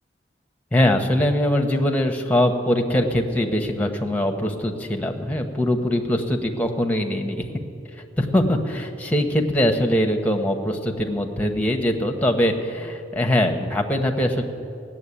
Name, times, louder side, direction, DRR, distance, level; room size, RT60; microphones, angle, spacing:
voice 1, 0.7-7.5 8.2-14.4, left 1 dB, 10° left, 4 dB, 0.9 m, -22 dB
16.0 x 7.4 x 9.8 m, 2.6 s
head